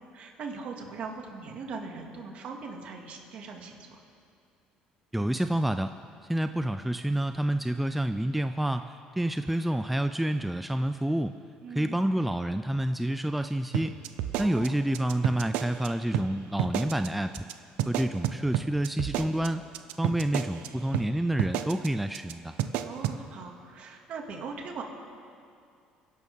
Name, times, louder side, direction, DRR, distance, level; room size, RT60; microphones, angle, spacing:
voice 1, 0.1-4.0 11.6-12.1 14.4-14.8 22.8-24.8, right 4 dB, 55° right, 2 dB, 2.2 m, -40 dB
voice 2, 5.1-5.9 6.3-11.4 11.8-13.9 14.4-17.4 17.9-19.6 20.0-22.5, right 1 dB, 5° right, 9 dB, 0.4 m, -28 dB
sound 1, 13.7-15.9 16.1-16.3 16.6-17.1 17.3-17.5 17.8-20.7 20.9-21.1 21.4-21.9 22.1-22.3 22.6-23.2, right 12 dB, 85° right, 0.7 m, -30 dB
27.0 x 11.5 x 3.7 m, 2.4 s
cardioid pair, 115°, 3 cm